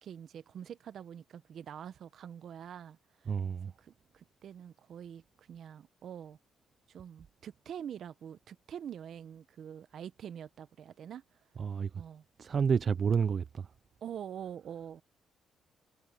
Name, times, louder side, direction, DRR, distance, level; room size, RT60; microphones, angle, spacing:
voice 1, 0.0-3.3 3.8-6.4 6.9-11.4 12.0-12.2 14.0-15.0, right 9 dB, 65° right, 0.9 m, -45 dB
voice 2, 3.3-3.7 11.6-12.0 12.4-13.7, right 6 dB, 50° right, 0.6 m, -30 dB
cardioid pair, 90°, 0 cm